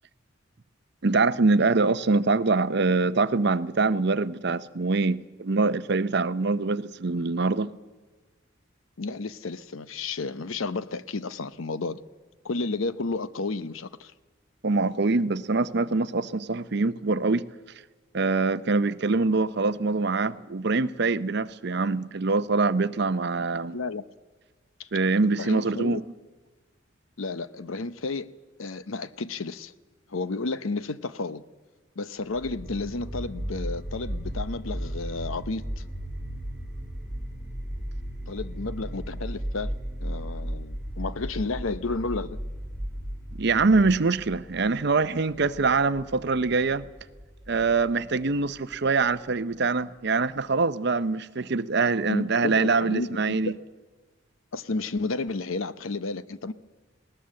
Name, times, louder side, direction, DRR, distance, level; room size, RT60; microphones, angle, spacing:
voice 1, 1.0-7.7 14.6-17.5 18.1-23.8 24.9-26.0 43.4-46.9 47.5-53.5, right 3 dB, 55° right, 0.7 m, -24 dB
voice 2, 9.0-12.0 12.4-14.1 23.7-24.0 24.8-24.9 25.2-26.0 27.2-28.3 28.6-29.7 30.1-31.4 32.0-35.8 38.3-39.7 40.0-42.4 52.1-53.5 54.5-56.5, left 3 dB, 85° left, 0.8 m, -32 dB
sound 1, 32.3-49.3, equal, ahead, 4.3 m, -36 dB
20.0 x 18.5 x 7.7 m
head